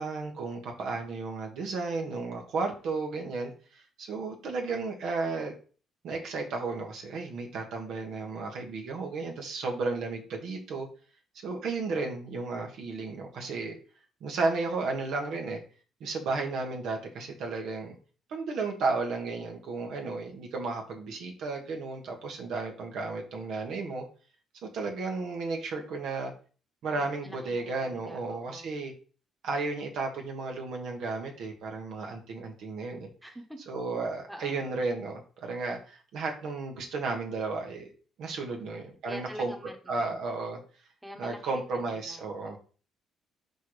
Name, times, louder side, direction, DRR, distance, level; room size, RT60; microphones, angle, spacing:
voice 1, 0.0-5.5 6.0-10.9 11.4-13.8 14.2-15.6 16.0-18.0 18.3-24.1 24.7-26.3 26.8-28.9 29.4-33.1 33.7-37.9 38.2-39.5 39.9-40.6 41.2-42.6, right 3 dB, 75° right, 2 dB, 1.7 m, -33 dB
voice 2, 26.9-28.7 33.2-33.6 34.3-34.6 38.5-40.2 41.0-42.6, equal, 5° right, 3 dB, 1.3 m, -46 dB
5.6 x 4.6 x 5.0 m, 0.39 s
cardioid pair, 120°, 0 cm